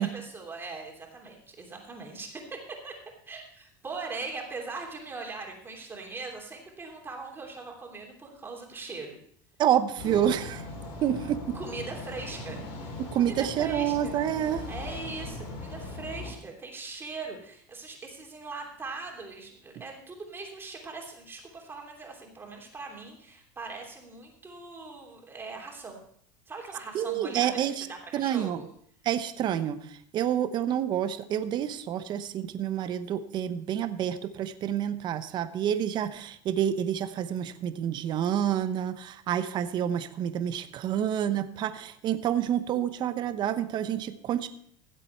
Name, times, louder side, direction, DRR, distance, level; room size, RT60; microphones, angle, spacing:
voice 1, 0.0-2.9 3.3-9.2 11.5-12.6 13.2-14.2 14.7-26.0 26.5-28.7, right 3 dB, 20° right, 0 dB, 3.0 m, -40 dB
voice 2, 9.6-10.6 11.0-11.4 13.1-14.6 26.9-27.9 28.1-28.6 29.0-44.5, right 10 dB, 45° right, 11 dB, 1.0 m, -28 dB
sound 1, 10.0-16.3, left 2 dB, 65° left, 3.4 m, -39 dB
16.0 x 7.6 x 4.5 m, 0.64 s
supercardioid pair, 115°, 10 cm